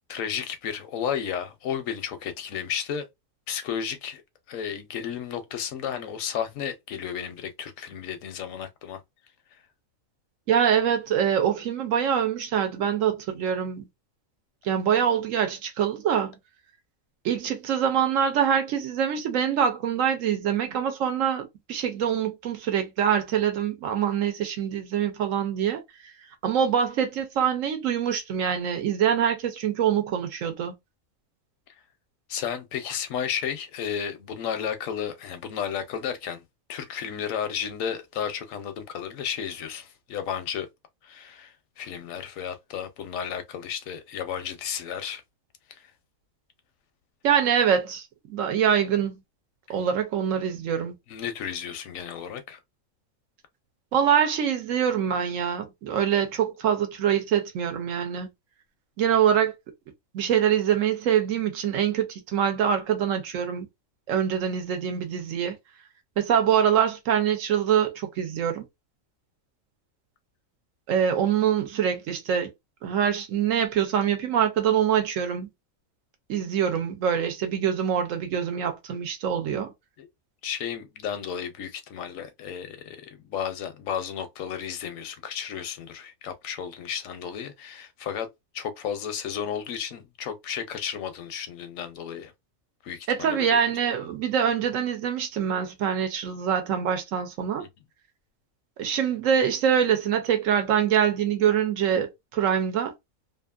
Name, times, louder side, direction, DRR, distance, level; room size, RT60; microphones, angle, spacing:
voice 1, 0.1-3.1 3.5-4.2 4.5-9.0 32.3-36.4 36.7-40.7 41.0-45.2 45.7-45.9 51.1-52.6 80.0-80.1 80.4-92.3 92.8-93.5 97.6-97.7, left 8 dB, 75° left, 1.0 m, -33 dB
voice 2, 10.5-13.9 14.6-16.3 17.2-25.8 26.4-30.7 47.2-49.2 49.7-51.0 53.9-58.3 59.0-59.5 60.1-63.7 64.1-65.6 66.2-68.6 70.9-72.5 72.8-75.5 76.3-79.7 93.1-97.7 98.8-102.9, right 8 dB, 70° right, 1.0 m, -24 dB
2.8 x 2.5 x 2.3 m
omnidirectional pair, 1.4 m